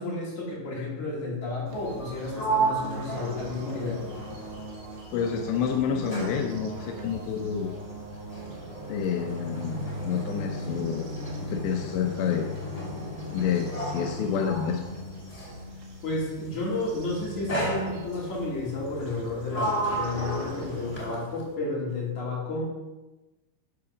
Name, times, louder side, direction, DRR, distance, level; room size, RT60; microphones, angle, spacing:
voice 1, 0.0-4.0 16.0-22.6, left 2 dB, 45° left, -6 dB, 3.6 m, -32 dB
sound 1, 1.7-21.0, right 1 dB, 55° right, 2.5 m, -41 dB
Sliding door, 1.9-5.2 5.5-15.7 16.6-16.9 17.5-18.4 19.0-21.5, right 2 dB, 25° left, 1.7 m, -34 dB
voice 2, 5.1-7.7 8.9-11.1 11.5-12.5 13.3-14.8, left 7 dB, 80° left, 3 dB, 2.7 m, -28 dB
13.5 x 4.8 x 5.9 m, 1.1 s
omnidirectional pair, 5.6 m